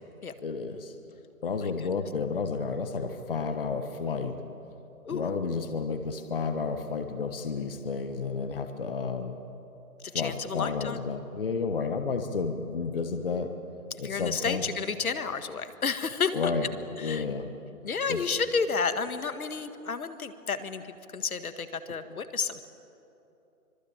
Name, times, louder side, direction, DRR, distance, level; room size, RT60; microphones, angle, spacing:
voice 1, 0.4-0.9 1.4-4.4 5.1-9.3 10.1-13.5 14.0-14.6 16.3-16.7 17.0-17.5 18.1-18.4 21.9-22.0, left 5 dB, 40° left, 7 dB, 1.3 m, -31 dB
voice 2, 10.1-11.0 14.0-16.5 17.0-17.2 17.8-20.8 21.1-22.7, left 5 dB, 70° left, 10 dB, 1.8 m, -31 dB
25.0 x 23.5 x 8.7 m, 2.9 s
hypercardioid pair, 175°, 44 cm